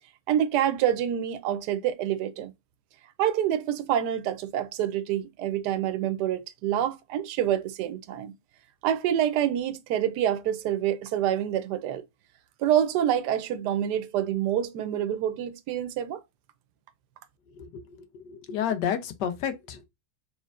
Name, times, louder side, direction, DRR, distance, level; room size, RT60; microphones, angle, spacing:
voice 1, 0.3-2.5 3.2-8.3 8.8-12.0 12.6-16.2, right 10 dB, 80° right, 1.2 m, -27 dB
voice 2, 17.6-19.8, left 8 dB, 85° left, 1.3 m, -31 dB
4.2 x 3.5 x 2.4 m
omnidirectional pair, 1.8 m